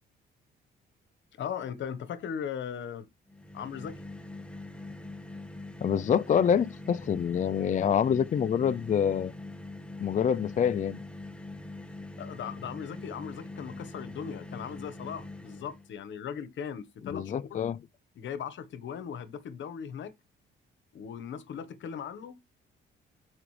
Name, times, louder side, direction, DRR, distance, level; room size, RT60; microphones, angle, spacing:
voice 1, 1.4-3.1 3.5-4.0 12.2-17.6 18.2-20.1 20.9-22.4, left 8 dB, 70° left, 1.2 m, -38 dB
sound 1, 3.3-15.9, left 2 dB, 5° left, 1.6 m, -43 dB
voice 2, 5.8-9.3 10.0-11.0 17.0-17.8, left 8 dB, 40° left, 0.5 m, -26 dB
13.0 x 4.9 x 3.3 m
cardioid pair, 90°, 20 cm